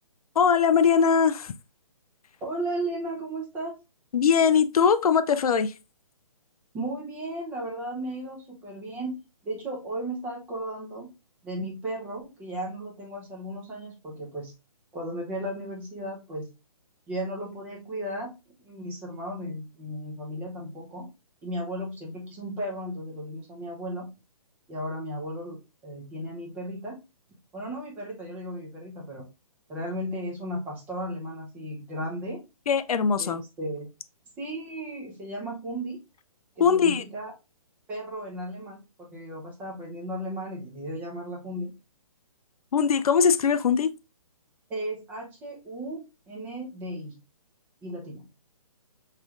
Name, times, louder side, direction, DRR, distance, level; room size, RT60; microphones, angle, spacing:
voice 1, 0.4-1.5 4.1-5.7 32.7-33.4 36.6-37.0 42.7-43.9, left 6 dB, 75° left, 0.5 m, -21 dB
voice 2, 2.4-3.8 6.7-9.2 9.4-11.1 11.4-14.5 14.9-16.5 17.1-21.1 21.4-24.1 24.7-27.0 27.5-29.3 29.7-32.4 33.2-33.9 34.4-36.0 36.6-37.3 37.9-41.8 44.7-47.2 47.8-48.2, right 1 dB, 10° right, 0.7 m, -35 dB
5.0 x 3.2 x 2.4 m
hypercardioid pair, 160°, 19 cm